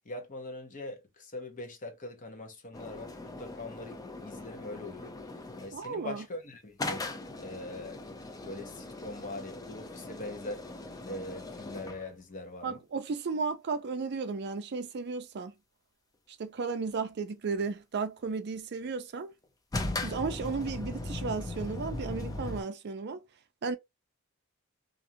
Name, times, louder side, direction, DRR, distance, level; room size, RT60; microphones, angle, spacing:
voice 1, 0.0-7.1 7.4-8.0 8.4-10.6 11.0-12.8, left 2 dB, 40° left, 0.7 m, -42 dB
sound 1, 2.7-5.9 6.8-12.1 19.7-22.6, left 2 dB, 15° left, 0.4 m, -39 dB
voice 2, 5.7-6.2 12.6-15.5 16.4-19.3 20.0-23.2 23.6-23.8, right 4 dB, 50° right, 0.4 m, -34 dB
2.5 x 2.3 x 2.7 m
head